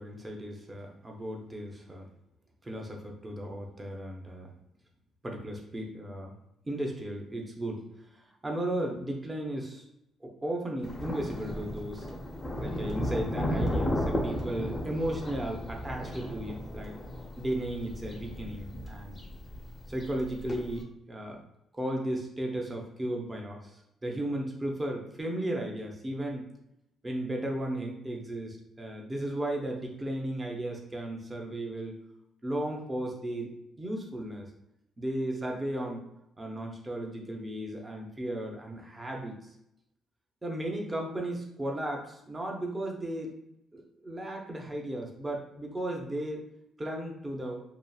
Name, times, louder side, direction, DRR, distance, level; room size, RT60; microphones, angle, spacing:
voice 1, 0.0-2.1 2.6-4.5 5.2-6.3 6.6-9.8 10.2-12.1 12.6-17.0 17.4-19.2 19.9-21.4 21.7-26.5 27.0-32.0 32.4-33.5 33.8-34.5 35.0-36.1 36.4-39.5 40.4-43.3 43.7-46.4 46.8-47.6, right 1 dB, 20° right, 0 dB, 0.7 m, -35 dB
Thunder, 10.8-20.8, equal, 25° left, 0.5 m, -34 dB
2.8 x 2.4 x 2.3 m, 0.82 s
cardioid pair, 90°, 0 cm